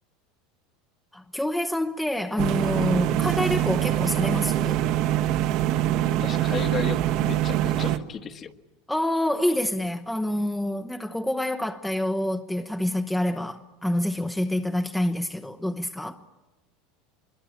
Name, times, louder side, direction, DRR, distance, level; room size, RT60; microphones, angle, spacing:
voice 1, 1.1-4.8 8.9-16.2, left 1 dB, 5° left, 0.8 m, -27 dB
sound 1, 2.4-8.0, right 12 dB, 60° right, 1.3 m, -24 dB
voice 2, 6.1-8.5, left 7 dB, 35° left, 1.3 m, -34 dB
25.0 x 22.5 x 8.7 m
supercardioid pair, 120°, 0 cm